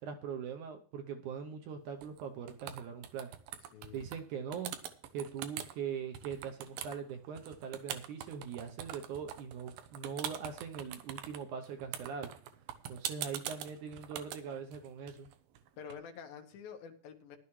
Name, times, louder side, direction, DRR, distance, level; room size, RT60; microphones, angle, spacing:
voice 1, 0.0-3.3 3.9-4.7 5.1-12.3 12.9-15.3, right 7 dB, 70° right, 5 dB, 2.0 m, -41 dB
sound 1, 2.0-2.2 2.5-4.2 4.5-5.7 6.1-15.9, right 10 dB, 90° right, 2.7 m, -43 dB
voice 2, 3.7-4.1 15.8-17.4, left 7 dB, 80° left, 5 dB, 3.0 m, -48 dB
15.5 x 11.0 x 3.2 m, 0.43 s
omnidirectional pair, 4.1 m